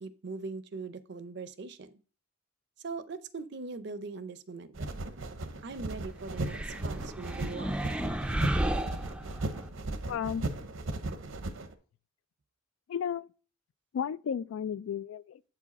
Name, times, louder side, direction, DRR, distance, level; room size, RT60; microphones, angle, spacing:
voice 1, 0.0-2.0 2.8-5.0 5.6-7.9, right 4 dB, 60° right, 0.5 m, -41 dB
sound 1, 4.8-11.7, right 2 dB, 85° right, 0.8 m, -37 dB
sound 2, 6.3-9.7, right 1 dB, 5° right, 0.4 m, -33 dB
voice 2, 10.1-10.4 12.9-13.3 13.9-15.5, left 8 dB, 90° left, 0.3 m, -33 dB
7.9 x 4.8 x 4.1 m
head